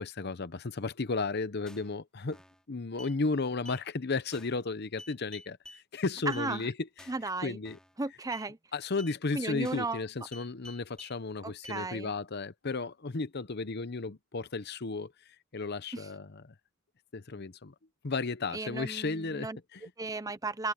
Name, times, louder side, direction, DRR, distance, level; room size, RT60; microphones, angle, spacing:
voice 1, 0.0-2.4 2.7-6.7 7.0-7.1 7.4-7.8 8.7-16.5 17.1-17.7 18.0-19.8, left 3 dB, 50° left, 0.8 m, -34 dB
sound 1, 1.7-2.0 2.3-2.6 3.0-3.1 3.6-3.8 4.3-4.6 5.0-5.8 6.3-6.5 7.0-7.3 7.6-8.0 8.3-8.5 9.0-9.1 9.6-10.0 10.3-11.1 11.6-11.8, left 1 dB, 5° left, 4.9 m, -50 dB
voice 2, 6.3-6.7 7.1-7.6 8.0-8.6 9.3-10.0 11.4-12.1 15.9-16.1 18.5-20.7, right 3 dB, 15° right, 0.6 m, -35 dB
head